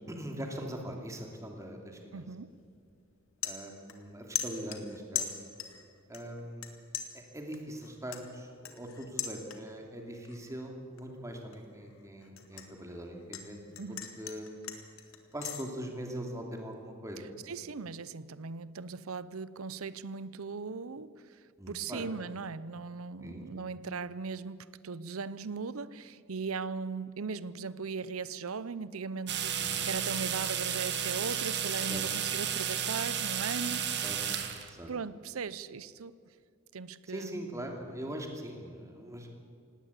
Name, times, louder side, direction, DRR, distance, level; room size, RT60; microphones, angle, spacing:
voice 1, 0.1-2.3 3.4-5.3 6.1-6.7 7.1-13.6 13.9-14.7 15.3-17.4 21.6-22.1 23.2-23.7 29.6-29.9 31.9-32.0 34.0-34.2 34.7-34.9 37.1-39.3, equal, 15° right, 2.7 m, -42 dB
voice 2, 2.1-2.5 13.8-14.1 17.2-33.8 34.6-36.1 36.7-37.4, right 5 dB, 85° right, 0.7 m, -39 dB
sound 1, 2.5-2.7 3.1-4.1 4.4-5.8 6.1-6.7 6.9-9.9 10.2-10.6 11.0-13.5 13.7-15.6, left 9 dB, 75° left, 2.1 m, -39 dB
sound 2, 29.3-34.7, right 9 dB, 55° right, 1.7 m, -33 dB
18.5 x 17.5 x 8.2 m
head